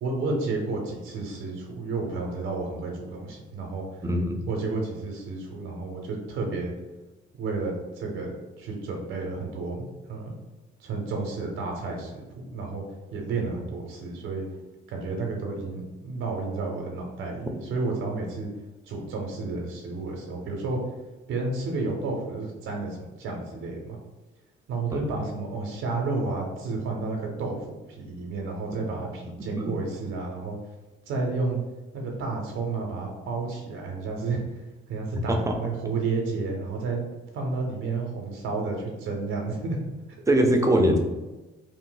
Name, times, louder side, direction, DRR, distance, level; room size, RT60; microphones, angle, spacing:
voice 1, 0.0-3.9 4.5-6.7 7.4-10.3 10.8-12.9 13.1-14.4 14.9-18.5 18.9-20.8 21.3-24.0 24.7-30.6 31.1-31.6 31.9-34.4 34.9-37.0 37.3-39.8, right 3 dB, 90° right, 1 dB, 0.6 m, -31 dB
voice 2, 4.0-4.4 24.9-25.0 29.6-29.7 35.3-35.5 40.3-41.0, right 1 dB, 15° right, 3 dB, 0.5 m, -22 dB
2.6 x 2.0 x 3.8 m, 1.1 s
cardioid pair, 90°, 20 cm